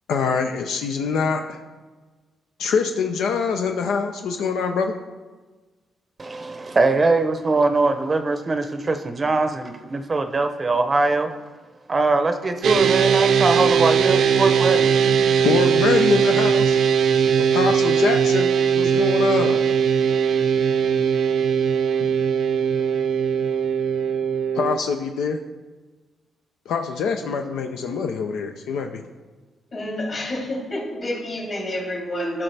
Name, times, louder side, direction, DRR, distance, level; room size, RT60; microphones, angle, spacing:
voice 1, 0.1-1.6 2.6-5.0 15.2-16.8 17.4-19.6 22.0-22.1 24.5-25.4 26.7-29.0, left 5 dB, 85° left, 5 dB, 0.5 m, -24 dB
voice 2, 6.2-11.3 11.9-14.9, right 3 dB, 30° right, 7 dB, 0.6 m, -21 dB
sound 1, 12.6-24.8, right 7 dB, 70° right, 0.5 m, -19 dB
voice 3, 29.7-32.4, left 1 dB, 45° left, -2 dB, 3.1 m, -28 dB
14.0 x 5.9 x 3.3 m, 1.3 s
cardioid pair, 100°, 0 cm